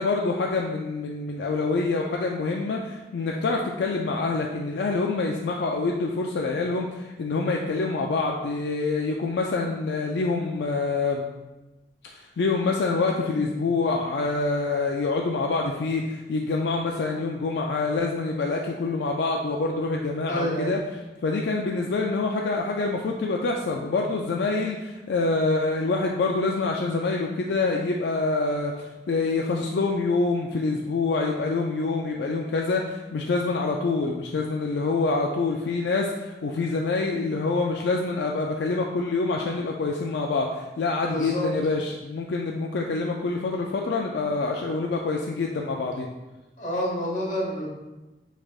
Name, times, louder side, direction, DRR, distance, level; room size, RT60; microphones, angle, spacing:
voice 1, 0.0-11.2 12.0-20.8 21.2-46.1, left 3 dB, 75° left, 0 dB, 0.3 m, -26 dB
voice 2, 20.3-20.7 41.0-41.5 46.6-47.7, equal, 45° left, -4 dB, 1.1 m, -28 dB
6.0 x 3.3 x 2.4 m, 1.1 s
head